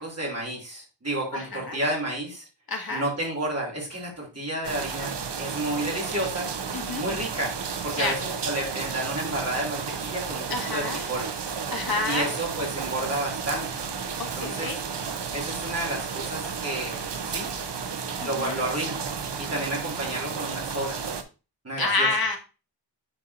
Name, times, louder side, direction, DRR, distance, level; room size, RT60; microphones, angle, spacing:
voice 1, 0.0-2.4 2.9-6.5 7.0-7.5 7.8-10.4 10.7-11.3 12.1-13.8 14.1-14.7 15.3-17.5 18.2-19.0 19.4-21.0 21.6-22.1, right 1 dB, 35° right, -3 dB, 2.6 m, -31 dB
voice 2, 1.3-1.8 2.7-3.1 6.7-7.0 8.0-8.1 10.5-11.1 11.7-12.3 14.2-14.8 18.2-18.6 21.8-22.4, left 3 dB, 55° left, 2 dB, 1.9 m, -28 dB
sound 1, 4.6-21.2, right 6 dB, 70° right, 0.9 m, -33 dB
10.0 x 4.3 x 2.7 m, 0.30 s
wide cardioid pair, 100°, 44 cm